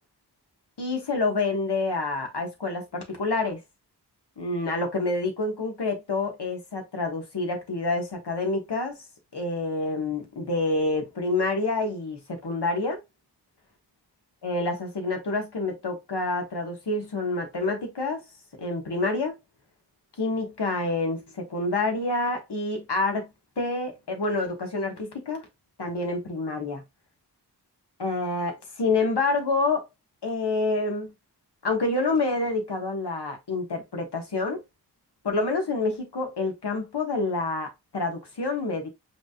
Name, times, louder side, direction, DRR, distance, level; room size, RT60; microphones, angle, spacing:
voice 1, 0.8-3.6 4.4-9.0 9.3-13.0 14.4-18.2 18.5-19.4 20.2-23.3 23.6-25.4 25.8-26.8 28.0-29.9 30.2-31.1 31.6-34.6 35.2-38.9, left 3 dB, 75° left, 1.7 m, -27 dB
5.1 x 3.5 x 2.4 m
wide cardioid pair, 80°, 41 cm